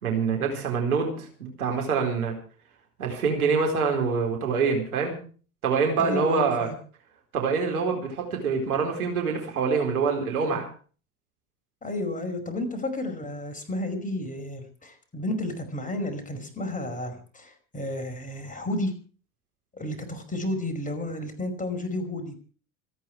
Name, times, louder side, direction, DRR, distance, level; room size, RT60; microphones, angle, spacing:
voice 1, 0.0-2.3 3.0-5.2 5.6-6.7 7.3-10.7, right 5 dB, 75° right, 2 dB, 4.3 m, -25 dB
voice 2, 6.0-6.7 11.8-18.9 19.7-22.3, left 1 dB, 15° left, 5 dB, 5.2 m, -32 dB
27.0 x 9.4 x 4.7 m, 0.40 s
figure-of-eight pair, 80°, 44 cm